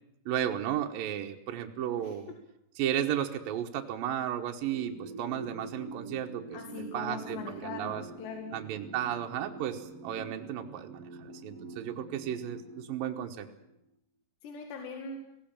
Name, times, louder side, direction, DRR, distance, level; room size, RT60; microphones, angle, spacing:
voice 1, 0.3-2.3 2.8-6.6 6.9-8.0 8.5-13.5, right 10 dB, 65° right, 3 dB, 2.6 m, -34 dB
sound 1, 4.7-13.7, right 3 dB, 45° right, 2.5 m, -45 dB
voice 2, 6.5-8.5 14.4-15.2, left 4 dB, 80° left, 3 dB, 4.2 m, -41 dB
20.0 x 17.0 x 8.8 m, 0.81 s
omnidirectional pair, 4.8 m